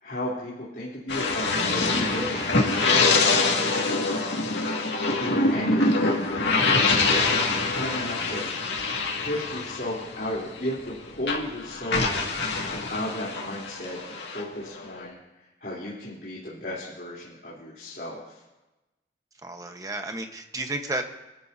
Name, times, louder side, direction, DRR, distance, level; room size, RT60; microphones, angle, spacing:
voice 1, 0.0-4.2 5.2-6.1 6.9-7.4 7.7-8.5 9.2-12.1 12.7-15.2 15.6-18.4, left 1 dB, 55° left, -7 dB, 3.4 m, -34 dB
sound 1, 1.1-10.9 11.2-15.1, left 3 dB, 90° left, 2.1 m, -25 dB
voice 2, 7.1-7.4 7.8-7.9 19.4-21.0, right 2 dB, 20° right, 5 dB, 1.1 m, -33 dB
25.0 x 13.5 x 2.8 m, 1.0 s
head